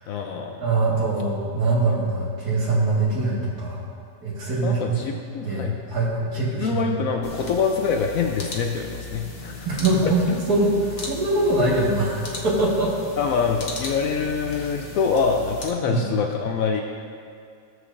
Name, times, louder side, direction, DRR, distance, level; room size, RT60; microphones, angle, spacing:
voice 1, 0.1-0.6 4.6-6.0 6.6-9.8 13.2-16.8, left 5 dB, 70° left, 2 dB, 1.0 m, -25 dB
voice 2, 0.6-3.9 4.2-5.0 5.4-7.1 9.6-12.9 15.9-16.0, right 2 dB, 85° right, -5 dB, 2.3 m, -23 dB
sound 1, 7.2-15.7, left 3 dB, 45° left, 1.2 m, -36 dB
15.0 x 7.4 x 2.6 m, 2.4 s
omnidirectional pair, 1.6 m